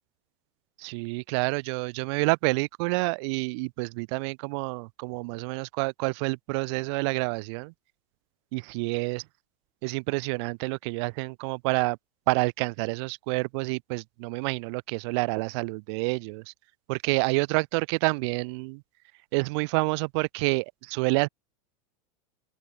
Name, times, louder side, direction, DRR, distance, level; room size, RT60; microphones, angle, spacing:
voice 1, 0.8-7.7 8.5-9.2 9.8-12.0 12.3-16.4 16.9-18.8 19.3-21.3, right 30 dB, 50° right, 0.4 m, -28 dB
open air
supercardioid pair, 145°, 18 cm